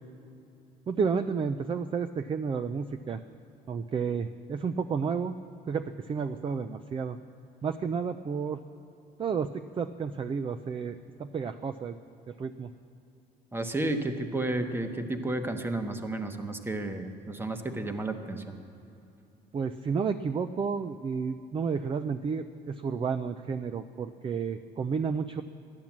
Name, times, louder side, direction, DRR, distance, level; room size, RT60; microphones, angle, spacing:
voice 1, 0.9-3.2 3.7-5.4 5.7-7.2 7.6-8.6 9.2-12.0 12.3-12.7 19.5-25.4, right 5 dB, 30° right, 10 dB, 0.5 m, -31 dB
voice 2, 13.5-18.6, right 2 dB, 15° right, 7 dB, 1.1 m, -32 dB
12.0 x 10.5 x 7.3 m, 2.9 s
cardioid pair, 110°, 17 cm